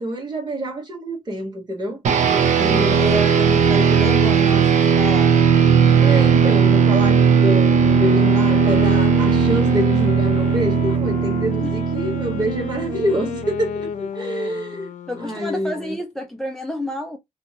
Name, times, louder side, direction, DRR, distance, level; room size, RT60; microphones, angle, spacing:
voice 1, 0.0-2.0 2.5-3.3 6.0-14.9 15.2-16.0, equal, 35° right, 1.3 m, -26 dB
sound 1, 2.0-13.7, right 6 dB, 75° right, 0.5 m, -17 dB
voice 2, 2.4-5.3 11.6-11.7 15.1-17.2, left 1 dB, 5° left, 0.3 m, -29 dB
Wind instrument woodwind instrument, 7.6-15.7, left 8 dB, 75° left, 0.6 m, -32 dB
2.7 x 2.6 x 2.8 m
wide cardioid pair, 165°, 13 cm